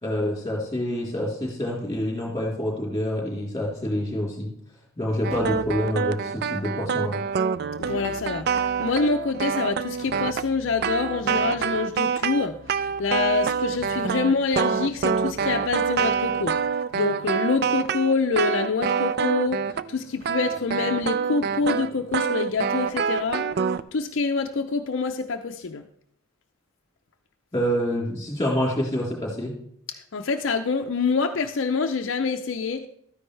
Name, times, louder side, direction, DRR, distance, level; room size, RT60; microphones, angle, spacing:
voice 1, 0.0-4.5 5.0-7.2 27.5-29.5, equal, 15° left, -2 dB, 3.3 m, -27 dB
sound 1, 5.2-19.9 20.2-23.8, right 6 dB, 45° right, 0.3 m, -26 dB
Keyboard (musical), 5.3-5.9 7.8-16.7, left 1 dB, 30° right, 1.1 m, -46 dB
voice 2, 7.8-8.5 8.8-16.6 16.9-23.4 23.9-25.8 30.1-32.9, left 4 dB, 60° left, 5 dB, 0.5 m, -26 dB
13.0 x 9.8 x 3.3 m, 0.70 s
head